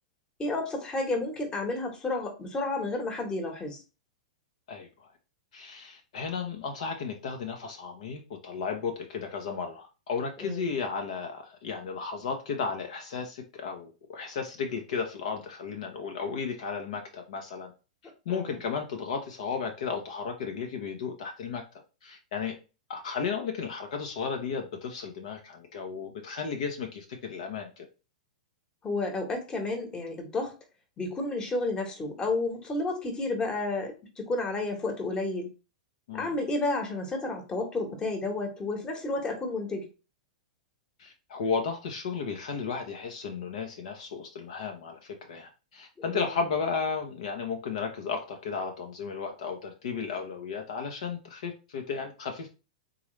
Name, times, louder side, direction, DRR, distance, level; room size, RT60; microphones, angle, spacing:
voice 1, 0.4-3.8 10.4-10.6 18.3-18.6 28.8-30.5 31.0-35.5 36.1-39.8 46.0-46.4, left 2 dB, 20° left, 3 dB, 1.3 m, -31 dB
voice 2, 4.7-5.1 5.5-17.7 18.3-21.6 22.0-22.6 22.9-27.9 36.1-36.4 41.0-52.5, left 5 dB, 60° left, 3 dB, 0.9 m, -34 dB
3.8 x 2.9 x 3.2 m, 0.31 s
figure-of-eight pair, 105°, 4 cm